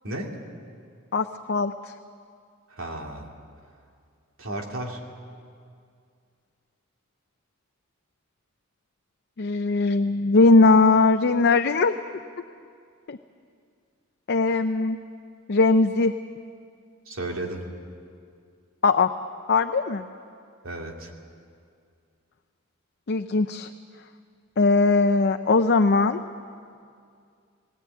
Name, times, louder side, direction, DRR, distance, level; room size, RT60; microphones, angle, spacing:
voice 1, 0.0-0.4 2.7-3.3 4.4-5.0 17.1-17.6 20.6-21.1, right 1 dB, 70° right, 0 dB, 2.6 m, -33 dB
voice 2, 1.1-1.9 9.4-11.9 13.1-13.2 14.3-15.0 15.5-16.1 18.8-19.1 19.5-20.1 23.1-23.7 24.6-26.2, left 3 dB, 50° left, 7 dB, 0.6 m, -20 dB
19.5 x 17.5 x 9.3 m, 2.3 s
head